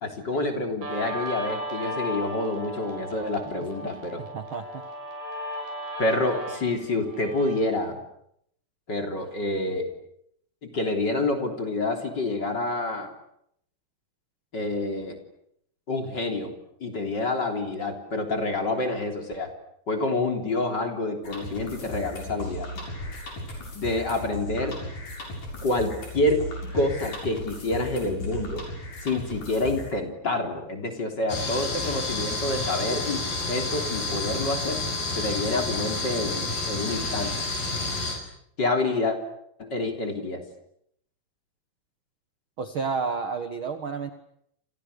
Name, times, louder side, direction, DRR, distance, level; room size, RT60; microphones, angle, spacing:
voice 1, 0.0-4.2 6.0-8.0 8.9-9.9 10.6-13.1 14.5-15.2 15.9-16.5 16.8-19.5 19.9-22.7 23.7-24.8 25.6-26.5 26.7-28.6 29.0-33.2 33.5-34.8 35.2-37.3 38.6-39.2 39.6-40.4, left 2 dB, 30° left, 4 dB, 3.8 m, -28 dB
Guitar, 0.8-7.8, equal, 85° right, 8.4 m, -35 dB
voice 2, 4.2-4.8 42.6-44.1, right 5 dB, 50° right, 9 dB, 1.7 m, -31 dB
sound 1, 21.2-29.9, left 1 dB, 60° left, 8.6 m, -36 dB
sound 2, 31.3-38.2, left 2 dB, 80° left, 7.9 m, -30 dB
29.0 x 28.0 x 6.8 m, 0.74 s
omnidirectional pair, 4.1 m